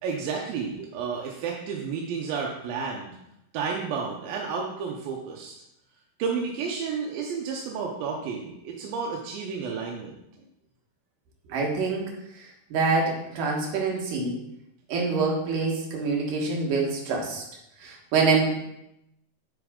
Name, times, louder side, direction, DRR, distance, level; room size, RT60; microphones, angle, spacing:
voice 1, 0.0-3.2 3.5-5.5 6.2-10.1, right 5 dB, 85° right, -1 dB, 2.6 m, -31 dB
voice 2, 11.5-12.1 12.7-14.4 14.9-17.4 17.8-18.5, right 4 dB, 70° right, -1 dB, 2.9 m, -25 dB
8.1 x 5.1 x 3.7 m, 0.83 s
omnidirectional pair, 4.0 m